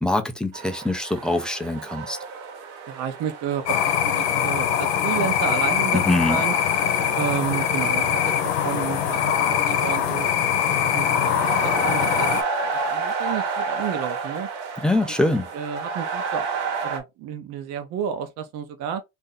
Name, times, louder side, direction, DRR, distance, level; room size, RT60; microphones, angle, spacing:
voice 1, 0.0-2.2 5.9-6.4 14.8-15.5, left 2 dB, 5° left, 0.4 m, -23 dB
sound 1, 0.5-17.0, right 4 dB, 80° right, 1.1 m, -32 dB
voice 2, 2.9-6.5 7.1-10.3 10.8-12.3 12.7-14.5 15.1-15.2 15.5-16.5 16.8-19.0, right 8 dB, 50° right, 0.7 m, -31 dB
sound 2, 3.7-12.4, left 9 dB, 90° left, 0.8 m, -22 dB
2.7 x 2.6 x 3.8 m
supercardioid pair, 130°, 32 cm